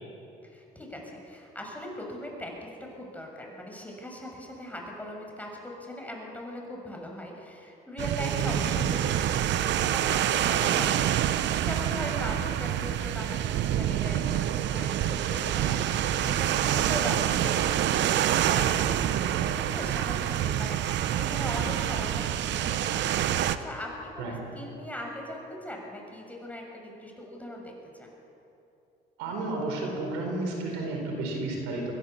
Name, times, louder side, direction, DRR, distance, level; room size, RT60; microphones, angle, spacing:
voice 1, 0.4-22.3 22.6-27.7 28.0-28.1, left 1 dB, 10° left, 0 dB, 6.6 m, -40 dB
sound 1, 8.0-23.6, right 11 dB, 70° right, 0.9 m, -27 dB
voice 2, 8.2-8.6 16.6-16.9 24.2-24.4 29.2-31.9, right 3 dB, 90° right, 1 dB, 4.4 m, -32 dB
23.0 x 16.0 x 7.2 m, 2.9 s
supercardioid pair, 70°, 20 cm